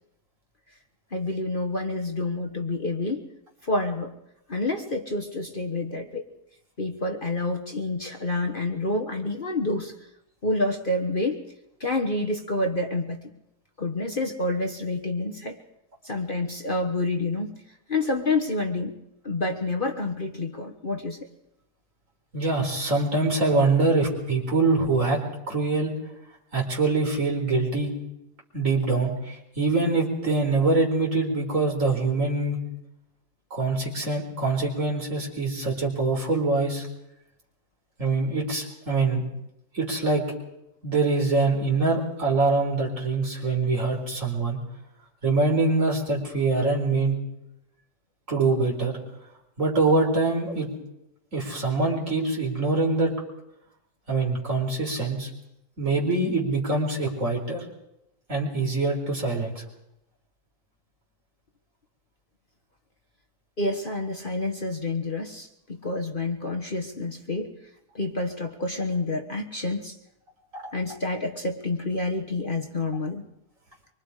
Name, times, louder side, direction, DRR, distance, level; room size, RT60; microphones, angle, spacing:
voice 1, 1.1-3.2 3.6-4.1 4.5-6.2 6.8-9.9 10.4-11.4 11.8-13.2 13.8-15.6 16.0-17.6 17.9-18.9 19.2-21.2 63.6-67.5 67.9-70.0 70.7-73.2, left 2 dB, 35° left, 2 dB, 1.5 m, -28 dB
voice 2, 22.3-25.2 25.5-25.9 26.5-27.9 28.5-32.6 33.5-36.9 38.0-39.2 39.7-40.2 40.8-44.6 45.2-47.2 48.3-48.9 49.6-50.7 51.3-53.1 54.1-55.3 55.8-57.6 58.3-59.6 70.5-70.7, right 3 dB, 55° right, -1 dB, 4.8 m, -24 dB
25.0 x 24.5 x 5.0 m, 0.84 s
omnidirectional pair, 1.7 m